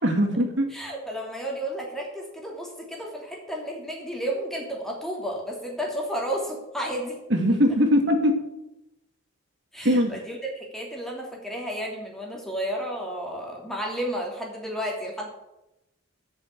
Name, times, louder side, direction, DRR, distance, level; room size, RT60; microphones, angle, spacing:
voice 1, 0.0-0.7 7.3-8.4 9.8-10.1, equal, 60° right, 4 dB, 2.0 m, -21 dB
voice 2, 0.7-7.2 9.7-15.3, equal, ahead, -1 dB, 2.8 m, -32 dB
16.0 x 6.2 x 8.3 m, 0.94 s
head